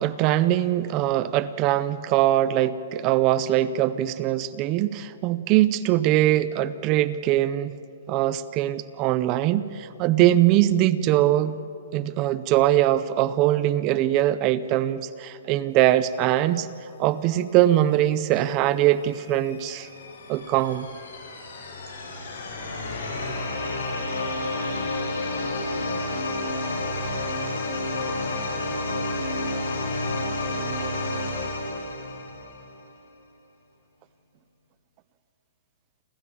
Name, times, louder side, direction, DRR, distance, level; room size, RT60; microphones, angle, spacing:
voice 1, 0.0-7.7 8.1-11.6 11.9-16.7 17.0-19.9 20.3-20.9, right 13 dB, 20° right, 14 dB, 0.5 m, -22 dB
sound 1, 18.9-32.7, left 2 dB, 90° left, 7.5 m, -30 dB
29.0 x 13.0 x 8.5 m, 2.7 s
hypercardioid pair, 175°, 0 cm